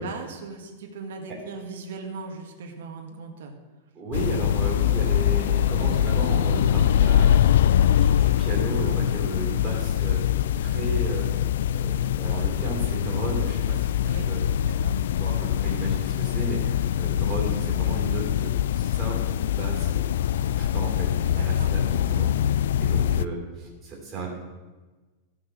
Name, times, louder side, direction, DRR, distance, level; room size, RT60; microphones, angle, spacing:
voice 1, 0.0-3.6 13.9-14.3 14.6-15.0 21.3-21.7, right 4 dB, 65° right, 2 dB, 1.9 m, -38 dB
voice 2, 3.9-7.4 8.0-10.2 10.6-11.3 11.7-13.9 14.3-14.4 14.8-14.9 15.1-24.3, right 3 dB, 15° right, -3 dB, 3.3 m, -34 dB
sound 1, 4.1-23.3, left 10 dB, 70° left, 0.3 m, -23 dB
14.5 x 6.1 x 6.4 m, 1.3 s
supercardioid pair, 180°, 0 cm